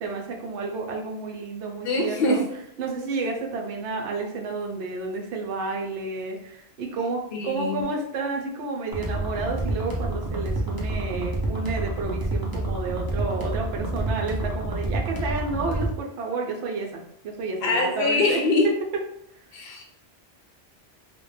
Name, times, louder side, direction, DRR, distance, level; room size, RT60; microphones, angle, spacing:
voice 1, 0.0-2.4 2.8-18.4, right 3 dB, 75° right, 0 dB, 0.9 m, -31 dB
voice 2, 1.8-2.4 7.3-7.8 17.6-18.7 19.5-19.8, left 2 dB, 65° left, 1 dB, 0.7 m, -23 dB
sound 1, 8.9-15.9, right 2 dB, 35° right, 0.3 m, -28 dB
2.4 x 2.1 x 3.1 m, 0.73 s
omnidirectional pair, 1.2 m